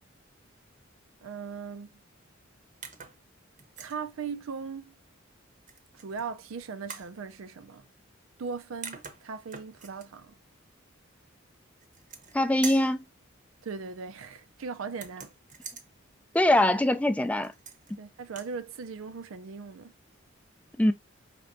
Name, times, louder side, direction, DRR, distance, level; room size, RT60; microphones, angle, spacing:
voice 1, 1.2-1.9 3.8-4.9 5.9-7.8 8.4-10.3 13.6-15.3 18.0-19.9, right 5 dB, 80° right, 0.5 m, -38 dB
sound 1, 2.8-3.2 3.6-4.0 5.7-6.2 6.9-7.1 8.5-8.6 8.8-10.1 11.8-12.4 12.6-13.0 14.9-15.9 17.4-17.9 18.2-18.5, right 5 dB, 40° right, 0.8 m, -42 dB
voice 2, 12.3-13.0 16.3-17.5 20.8-20.9, left 1 dB, 5° left, 0.3 m, -23 dB
5.2 x 3.4 x 2.6 m
head